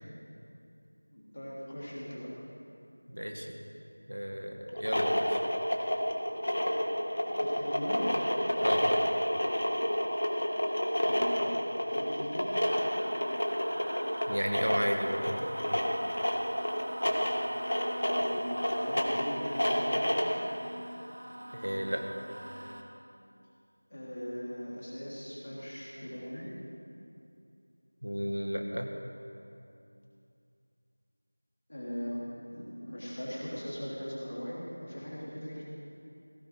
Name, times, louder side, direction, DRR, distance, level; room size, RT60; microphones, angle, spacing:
voice 1, 1.1-2.3 7.3-8.1 11.0-12.5 18.2-18.5 18.8-20.3 23.9-26.5 31.7-35.6, equal, 35° left, -6 dB, 3.3 m, -39 dB
voice 2, 3.1-3.6 4.1-5.4 8.6-9.0 14.3-15.8 21.5-22.1 28.0-28.9, equal, 80° right, 3 dB, 2.0 m, -33 dB
sound 1, 4.7-20.4, equal, 55° left, 1.8 m, -30 dB
sound 2, 12.6-22.8, equal, 45° right, 1.3 m, -42 dB
17.0 x 14.5 x 4.7 m, 2.6 s
figure-of-eight pair, 180°, 0 cm